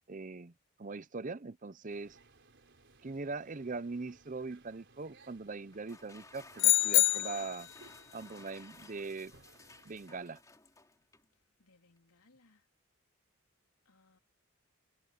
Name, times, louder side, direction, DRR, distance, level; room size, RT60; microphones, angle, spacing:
voice 1, 0.1-0.5 0.8-2.2 3.0-7.7 8.1-9.3 9.8-10.4, right 3 dB, 35° right, 0.6 m, -41 dB
sound 1, 1.9-10.3, right 3 dB, 55° right, 4.4 m, -62 dB
sound 2, 5.7-11.3, left 3 dB, 15° left, 3.7 m, -56 dB
sound 3, 6.6-7.7, left 20 dB, 55° left, 0.3 m, -26 dB
voice 2, 11.6-12.7 13.8-14.2, left 3 dB, 85° left, 3.3 m, -67 dB
head